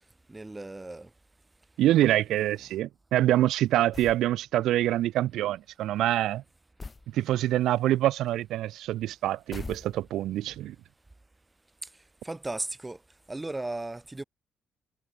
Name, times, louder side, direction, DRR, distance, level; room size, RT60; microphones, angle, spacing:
voice 1, 0.3-1.1 12.2-13.0 13.3-14.2, right 2 dB, 15° right, 2.2 m, -35 dB
voice 2, 1.8-6.4 7.1-10.8, right 14 dB, 85° right, 0.5 m, -25 dB
sound 1, 3.9-4.3 6.8-7.1 9.5-10.3, left 3 dB, 25° left, 0.5 m, -41 dB
cardioid pair, 90°, 0 cm